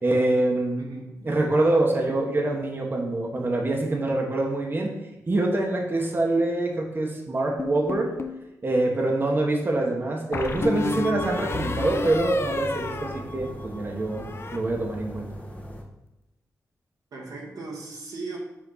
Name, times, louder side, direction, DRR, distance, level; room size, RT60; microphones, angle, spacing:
voice 1, 0.0-0.9 1.2-4.9 5.3-8.1 8.6-14.2 14.5-15.3, right 2 dB, 35° right, 0 dB, 1.4 m, -25 dB
voice 2, 0.8-1.4 17.1-18.4, right 3 dB, 90° right, -3 dB, 1.9 m, -38 dB
sound 1, 7.6-8.4 10.3-13.8 14.1-14.6, left 3 dB, 40° left, 0.7 m, -31 dB
sound 2, 10.4-15.8, equal, 25° left, 1.6 m, -39 dB
6.2 x 4.4 x 5.7 m, 0.95 s
cardioid pair, 80°, 6 cm